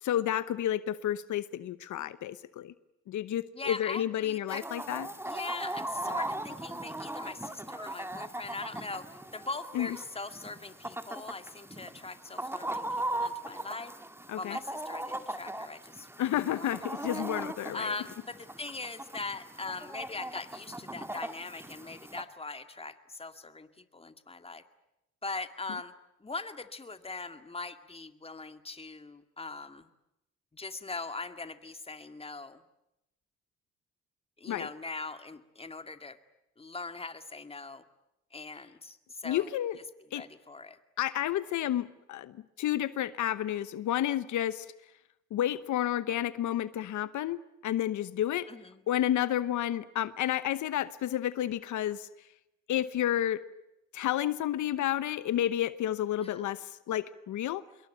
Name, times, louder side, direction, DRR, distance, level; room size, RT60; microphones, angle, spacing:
voice 1, 0.0-2.7 3.1-5.1 9.7-9.9 14.3-14.6 16.2-17.9 34.5-34.7 39.2-39.8 40.1-40.2 41.0-44.7 45.3-48.5 48.9-52.1 52.7-53.4 53.9-57.6, left 12 dB, 75° left, 15 dB, 1.0 m, -31 dB
voice 2, 3.5-4.6 5.2-13.9 14.4-16.1 16.5-16.8 17.1-17.2 17.7-24.6 25.2-25.9 26.2-29.9 30.5-32.6 34.4-36.2 36.6-37.8 38.3-39.5 40.1-40.8 48.5-48.8 56.2-56.5, left 3 dB, 20° left, 9 dB, 2.2 m, -41 dB
Chicken rooster, 4.5-22.2, right 1 dB, 10° right, 2.2 m, -39 dB
26.5 x 22.5 x 9.1 m, 0.90 s
cardioid pair, 90°, 30 cm